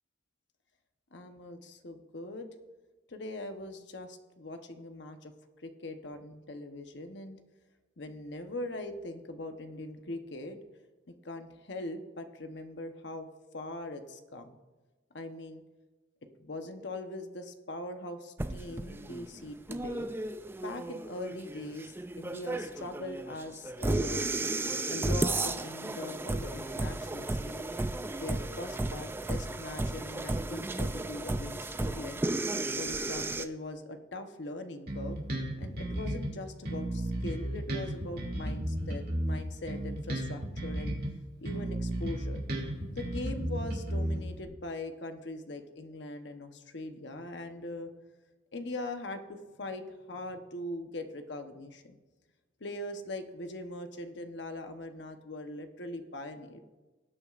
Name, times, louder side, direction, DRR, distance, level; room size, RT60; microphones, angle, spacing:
voice 1, 1.1-2.5 3.1-5.3 5.6-7.4 8.0-10.6 11.2-13.3 13.5-14.6 15.1-15.6 16.4-20.1 20.6-24.3 24.9-27.6 28.2-32.2 32.8-35.2 35.6-41.0 41.4-42.4 42.9-47.9 48.5-49.8 50.1-52.0 52.6-56.6, left 2 dB, 65° left, 6 dB, 1.0 m, -41 dB
sound 1, 18.4-33.4, right 2 dB, 10° right, 0.4 m, -34 dB
Bass guitar, 34.9-36.3 36.6-41.1 41.4-44.5, right 1 dB, 55° right, 2.4 m, -34 dB
19.0 x 8.8 x 2.5 m, 1.2 s
head